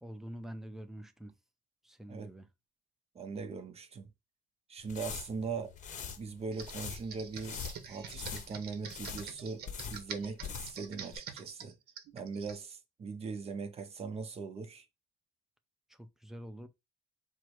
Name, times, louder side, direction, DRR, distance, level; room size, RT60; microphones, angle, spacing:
voice 1, 0.0-1.3 1.8-2.5 15.9-16.7, right 1 dB, ahead, 0.6 m, -46 dB
voice 2, 3.1-4.1 4.7-5.7 6.2-11.8 12.1-14.9, right 5 dB, 35° right, 0.7 m, -40 dB
sound 1, 4.8-10.9 11.1-11.2, left 7 dB, 45° left, 0.7 m, -43 dB
Computer keyboard, 6.5-12.6, right 7 dB, 70° right, 0.9 m, -46 dB
4.6 x 2.1 x 4.6 m
cardioid pair, 110°, 17 cm